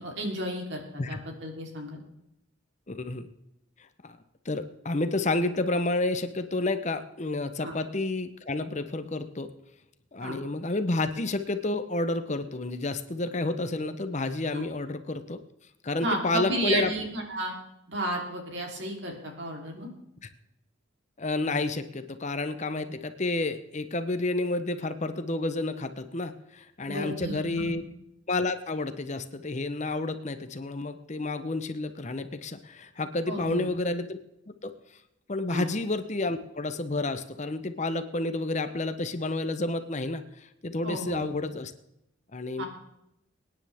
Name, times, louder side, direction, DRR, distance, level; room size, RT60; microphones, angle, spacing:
voice 1, 0.0-2.0 7.6-7.7 10.2-10.4 14.5-14.6 16.0-17.5 17.9-19.9 26.9-27.7 33.3-33.7 35.5-35.7 40.8-41.2 42.6-42.7, right 1 dB, 60° right, 1 dB, 3.4 m, -32 dB
voice 2, 2.9-3.3 4.0-4.2 4.4-9.5 10.1-15.4 15.8-16.9 20.2-20.3 21.2-27.8 28.3-34.2 34.6-34.7 35.3-41.7 42.3-42.6, left 2 dB, 35° left, 10 dB, 0.8 m, -30 dB
24.5 x 9.9 x 3.5 m, 0.82 s
head